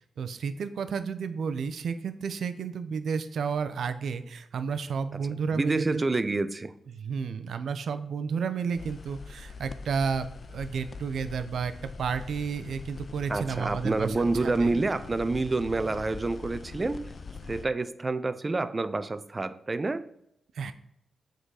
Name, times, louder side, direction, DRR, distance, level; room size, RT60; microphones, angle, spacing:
voice 1, 0.2-6.0 6.9-11.7 12.0-14.1 14.4-14.7 20.6-20.7, right 6 dB, 75° right, 0.6 m, -31 dB
voice 2, 5.1-6.7 13.3-17.0 17.5-20.1, right 3 dB, 25° right, 0.5 m, -28 dB
sound 1, 8.8-17.6, left 4 dB, 45° left, 0.4 m, -43 dB
7.8 x 3.9 x 4.8 m
cardioid pair, 100°, 0 cm